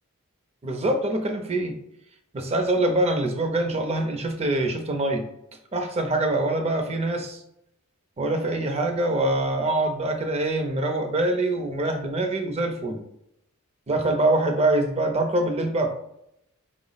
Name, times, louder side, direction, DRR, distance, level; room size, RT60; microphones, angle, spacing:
voice 1, 0.6-1.8 2.3-5.2 5.7-7.4 8.2-13.0 13.9-15.9, right 2 dB, 30° right, 5 dB, 0.5 m, -24 dB
4.4 x 2.0 x 3.9 m, 0.78 s
head